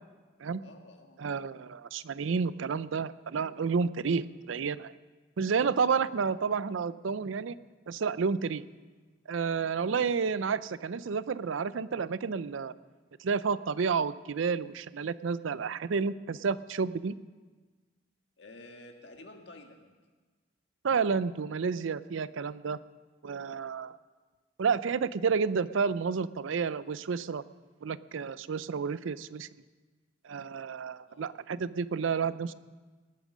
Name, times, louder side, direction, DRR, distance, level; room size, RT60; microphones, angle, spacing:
voice 1, 0.6-1.2 4.1-4.2 5.9-6.1 9.8-10.1 18.4-20.0 31.0-31.3, left 2 dB, 65° left, 3 dB, 1.7 m, -51 dB
voice 2, 1.2-4.9 5.4-7.6 7.9-8.6 9.3-12.7 13.2-17.1 20.8-22.8 23.2-24.0 24.6-27.4 27.8-29.5 30.2-32.5, right 5 dB, 85° right, 16 dB, 0.5 m, -30 dB
19.5 x 9.0 x 6.2 m, 1.4 s
head